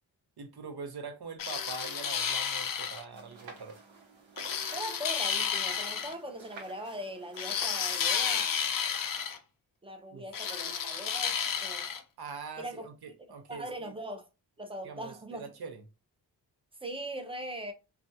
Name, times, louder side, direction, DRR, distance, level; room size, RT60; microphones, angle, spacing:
voice 1, 0.4-3.8 10.1-10.2 12.2-13.9 14.8-15.8, right 5 dB, 55° right, 0.7 m, -43 dB
sound 1, 1.4-3.0 4.4-6.1 7.4-9.4 10.3-12.0, left 7 dB, 45° left, 0.5 m, -32 dB
sound 2, 3.1-8.1, right 3 dB, 80° right, 1.0 m, -51 dB
voice 2, 4.7-8.5 9.8-11.9 12.6-12.9 13.5-14.3 14.6-15.4 16.8-17.7, right 1 dB, 10° right, 0.6 m, -40 dB
2.5 x 2.2 x 2.7 m
cardioid pair, 55°, 46 cm